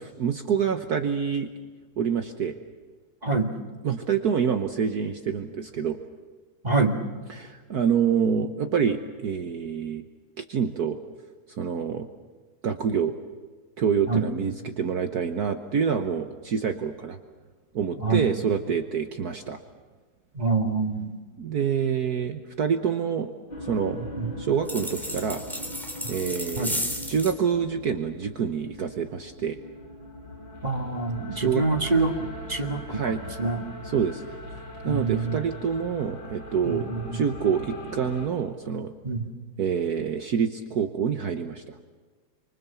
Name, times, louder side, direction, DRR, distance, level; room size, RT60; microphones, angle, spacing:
voice 1, 0.0-1.5 2.0-2.6 3.8-6.0 7.4-10.0 10.4-11.0 11.5-12.1 12.6-13.1 13.8-17.2 17.7-19.6 21.4-23.3 23.6-24.0 24.4-25.4 26.1-26.8 27.1-29.6 31.3-31.6 32.9-33.2 33.8-34.2 34.8-36.9 37.1-38.9 39.6-41.8, right 7 dB, 55° right, 7 dB, 1.5 m, -27 dB
voice 2, 3.2-3.5 6.6-7.0 14.1-14.3 18.0-18.3 20.3-21.2 23.9-24.3 26.0-26.1 26.6-26.7 30.6-33.6 34.8-35.4 36.6-37.2 39.0-39.3, right 3 dB, 20° right, 3 dB, 1.8 m, -26 dB
sound 1, 23.5-38.3, left 1 dB, 65° left, 6.2 m, -40 dB
sound 2, 24.7-27.4, equal, ahead, 3.2 m, -33 dB
27.5 x 25.0 x 7.1 m, 1.4 s
omnidirectional pair, 2.1 m